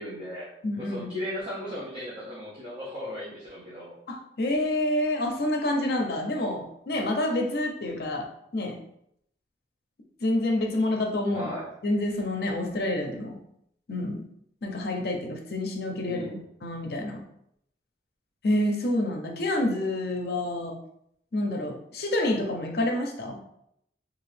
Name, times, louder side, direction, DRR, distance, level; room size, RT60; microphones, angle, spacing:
voice 1, 0.0-0.5 0.8-3.9 11.3-11.7 16.1-16.5, left 1 dB, 30° right, -9 dB, 0.8 m, -36 dB
voice 2, 0.6-1.1 4.1-8.3 8.5-8.8 10.2-11.5 11.8-13.4 13.9-14.2 14.6-16.2 16.6-17.2 18.4-20.8 21.3-23.4, left 1 dB, 55° left, 2 dB, 0.6 m, -28 dB
2.8 x 2.4 x 3.2 m, 0.74 s
head